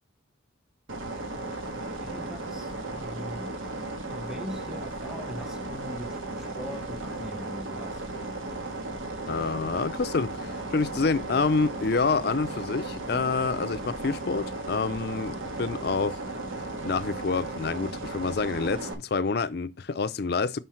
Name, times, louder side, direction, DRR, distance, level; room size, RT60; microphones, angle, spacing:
sound 1, 0.9-18.9, right 2 dB, 85° right, 1.4 m, -35 dB
voice 1, 2.0-3.6 4.0-8.0, equal, 5° right, 1.0 m, -41 dB
voice 2, 9.3-16.2 16.8-20.6, left 4 dB, 55° left, 0.5 m, -27 dB
5.6 x 5.4 x 4.4 m
head